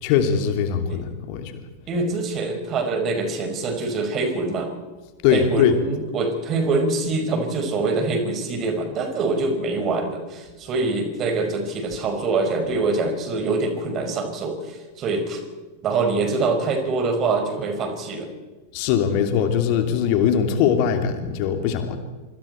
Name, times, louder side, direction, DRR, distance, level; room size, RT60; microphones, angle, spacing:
voice 1, 0.0-1.5 5.2-5.8 18.7-22.0, left 8 dB, 45° left, 6 dB, 2.7 m, -21 dB
voice 2, 1.9-4.7 5.3-15.4 15.8-18.3, right 3 dB, 30° right, 5 dB, 5.3 m, -24 dB
26.0 x 25.5 x 4.5 m, 1.3 s
figure-of-eight pair, 90°, 0 cm